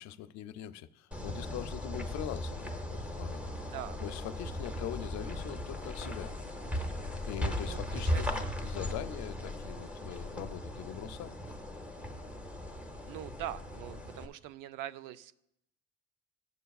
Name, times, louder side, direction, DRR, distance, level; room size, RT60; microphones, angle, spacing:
voice 1, 0.0-3.4 4.0-6.3 7.3-11.4, left 12 dB, 65° left, 13 dB, 0.5 m, -42 dB
sound 1, 1.1-14.2, left 1 dB, 5° right, 0.7 m, -37 dB
voice 2, 3.7-4.0 7.6-8.5 13.1-15.4, right 12 dB, 85° right, 14 dB, 0.5 m, -43 dB
15.0 x 6.6 x 2.3 m, 0.81 s
cardioid pair, 145°, 31 cm